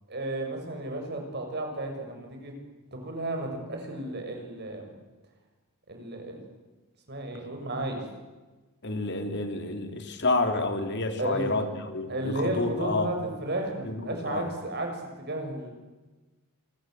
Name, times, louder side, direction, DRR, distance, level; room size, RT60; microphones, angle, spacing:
voice 1, 0.1-2.6 2.9-4.9 5.9-6.4 7.1-8.0 11.2-11.7 12.1-15.7, right 1 dB, 50° right, 3 dB, 7.0 m, -33 dB
voice 2, 8.8-13.1 13.8-14.4, left 2 dB, 55° left, 6 dB, 3.8 m, -29 dB
27.0 x 24.0 x 8.1 m, 1.2 s
head